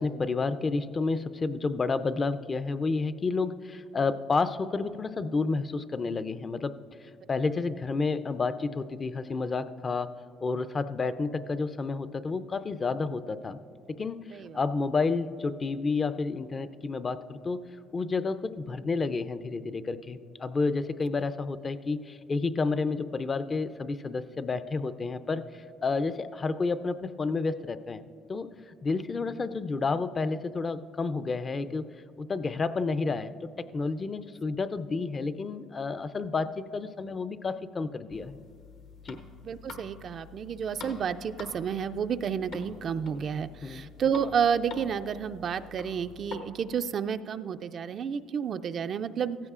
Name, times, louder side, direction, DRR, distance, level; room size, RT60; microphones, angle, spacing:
voice 1, 0.0-6.8 7.3-10.1 10.4-13.6 13.9-17.6 17.9-25.5 25.8-28.0 28.3-31.9 32.2-33.3 33.6-38.4 39.1-39.2 43.6-43.9, left 4 dB, 30° left, 12 dB, 0.4 m, -30 dB
sound 1, 38.1-46.4, left 4 dB, 75° left, 1.1 m, -46 dB
voice 2, 39.4-49.4, right 7 dB, 50° right, 11 dB, 0.3 m, -30 dB
16.5 x 15.0 x 2.4 m, 2.3 s
cardioid pair, 100°, 0 cm